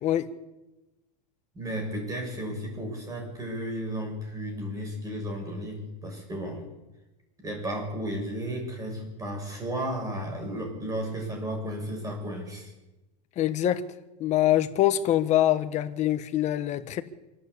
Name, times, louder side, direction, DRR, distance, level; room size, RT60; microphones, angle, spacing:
voice 1, 1.5-6.6 7.4-12.7, equal, 15° right, 2 dB, 7.1 m, -33 dB
voice 2, 13.4-13.8 14.2-17.0, left 13 dB, 35° left, 10 dB, 1.4 m, -24 dB
27.0 x 12.0 x 8.5 m, 1.0 s
supercardioid pair, 150°, 21 cm